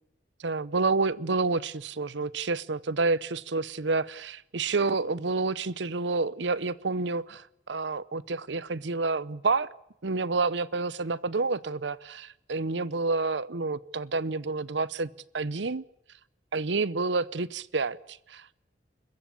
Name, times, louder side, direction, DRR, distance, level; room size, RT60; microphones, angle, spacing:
voice 1, 0.4-9.7 10.0-15.8 16.5-18.5, right 3 dB, 70° right, 19 dB, 0.8 m, -29 dB
28.5 x 14.5 x 8.5 m, 0.79 s
head